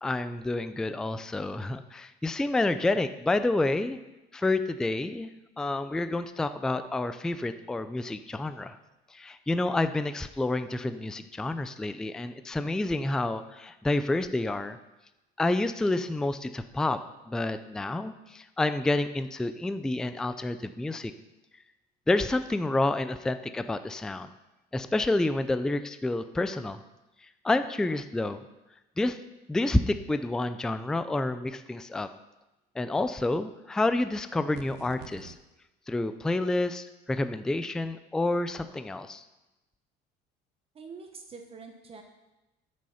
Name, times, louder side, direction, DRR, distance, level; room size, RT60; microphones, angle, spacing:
voice 1, 0.0-4.0 4.3-5.3 5.6-8.8 9.1-14.8 15.4-17.0 17.3-21.1 22.1-24.3 24.7-26.8 27.4-28.4 29.0-29.2 29.5-32.1 32.8-35.4 35.9-39.2, left 2 dB, 5° left, 11 dB, 0.3 m, -29 dB
sound 1, 34.5-35.4, right 9 dB, 65° right, 1.0 m, -46 dB
voice 2, 40.7-42.0, right 4 dB, 30° right, 4 dB, 1.0 m, -45 dB
13.0 x 6.3 x 5.6 m, 1.0 s
cardioid pair, 150°, 19 cm